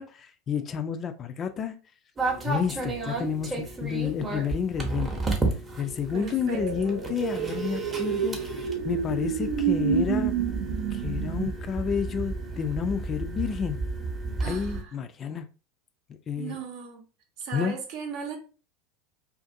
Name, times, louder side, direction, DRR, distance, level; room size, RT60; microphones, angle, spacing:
voice 1, 0.0-1.8 2.4-5.2 5.8-8.4 8.8-10.3 10.9-13.8 14.4-15.5 16.3-16.6 17.5-17.7, left 7 dB, 35° left, 0.3 m, -30 dB
sound 1, 2.2-14.8, right 3 dB, 20° right, 0.8 m, -33 dB
voice 2, 6.1-7.0 14.4-14.9 16.3-17.0 17.4-18.4, right 6 dB, 55° right, 0.7 m, -37 dB
sound 2, 6.5-11.5, right 8 dB, 75° right, 0.3 m, -29 dB
2.5 x 2.5 x 2.5 m
hypercardioid pair, 85°, 0 cm